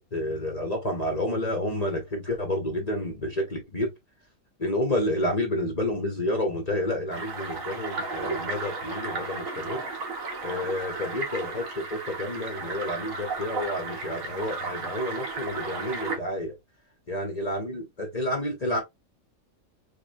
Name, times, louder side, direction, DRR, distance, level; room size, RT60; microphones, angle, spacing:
voice 1, 0.0-3.9 4.6-9.8 10.4-16.5 17.1-18.8, left 1 dB, 30° left, 1.1 m, -30 dB
sound 1, 7.1-16.2, right 4 dB, 90° right, 1.6 m, -34 dB
4.3 x 3.3 x 2.6 m
omnidirectional pair, 1.4 m